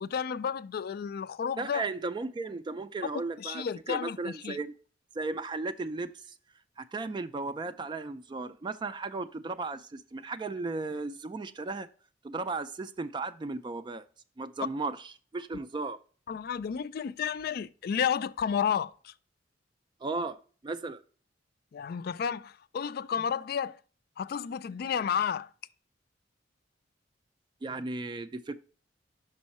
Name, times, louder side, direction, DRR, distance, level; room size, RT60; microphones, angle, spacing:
voice 1, 0.0-1.8 3.4-4.6 16.3-19.1 21.7-23.8 24.2-25.5, left 7 dB, 55° left, 0.3 m, -32 dB
voice 2, 1.6-4.7 5.2-6.3 6.8-11.9 12.2-14.1 14.4-16.0 20.0-20.4 20.6-21.0 27.6-28.6, right 3 dB, 25° right, 0.3 m, -35 dB
5.6 x 5.3 x 4.1 m
head